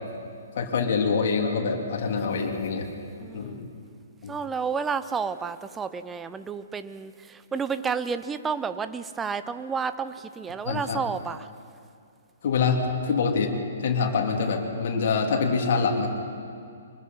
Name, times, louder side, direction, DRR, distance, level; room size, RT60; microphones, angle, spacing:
voice 1, 0.6-2.9 3.3-3.7 4.2-4.4 10.7-11.0 12.4-13.5 13.8-16.1, left 5 dB, 50° left, 1 dB, 3.3 m, -25 dB
voice 2, 3.2-3.6 4.3-11.5, right 5 dB, 10° right, 12 dB, 0.8 m, -31 dB
24.5 x 20.5 x 5.6 m, 2.4 s
figure-of-eight pair, 120°, 0 cm